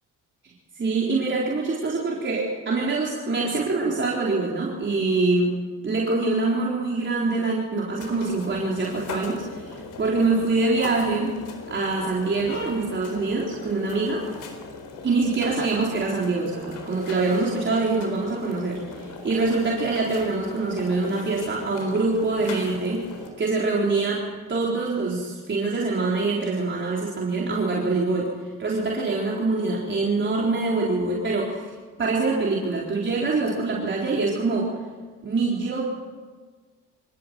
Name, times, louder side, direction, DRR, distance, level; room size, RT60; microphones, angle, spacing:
voice 1, 0.8-5.6 5.8-11.4 11.7-14.3 15.0-23.1 23.4-24.2 24.5-28.3 28.6-31.6 32.0-34.7 35.2-35.8, right 3 dB, 40° right, -4 dB, 4.1 m, -24 dB
sound 1, 7.9-23.3, left 4 dB, 80° left, 4.3 m, -39 dB
25.5 x 18.0 x 7.8 m, 1.5 s
cardioid pair, 90°, 30 cm